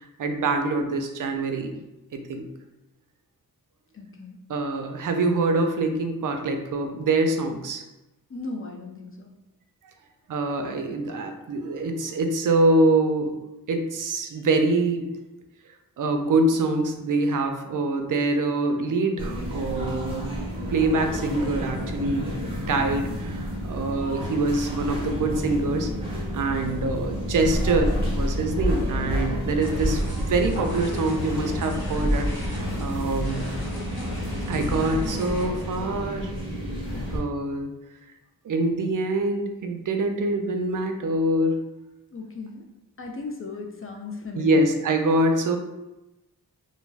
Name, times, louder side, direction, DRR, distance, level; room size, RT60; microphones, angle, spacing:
voice 1, 0.0-1.8 2.1-2.5 4.5-7.8 10.3-13.3 13.7-15.1 16.0-20.3 20.7-33.5 34.5-36.3 37.1-37.7 38.4-41.6 44.3-45.6, right 2 dB, 60° right, 5 dB, 0.4 m, -25 dB
voice 2, 3.9-4.4 8.3-9.3 42.1-42.6 43.0-44.7, left 3 dB, 35° left, 1 dB, 0.4 m, -36 dB
sound 1, 19.2-37.2, equal, 15° right, 0.8 m, -29 dB
sound 2, 29.6-35.4, equal, 90° left, 1.2 m, -34 dB
2.2 x 2.2 x 3.2 m, 0.98 s
wide cardioid pair, 65°, 37 cm